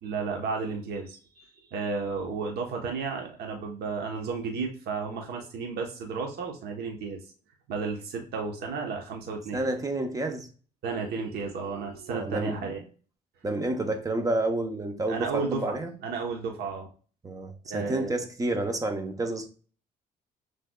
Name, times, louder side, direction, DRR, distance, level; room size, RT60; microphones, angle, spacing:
voice 1, 0.0-7.2 7.7-9.6 10.8-12.8 15.1-15.8 16.0-16.9 17.7-18.1, right 4 dB, 70° right, 2 dB, 1.1 m, -33 dB
voice 2, 9.5-10.5 12.1-12.7 13.4-15.9 17.2-19.5, right 2 dB, 20° right, 6 dB, 0.8 m, -29 dB
6.2 x 3.3 x 2.3 m, 0.39 s
cardioid pair, 110°, 17 cm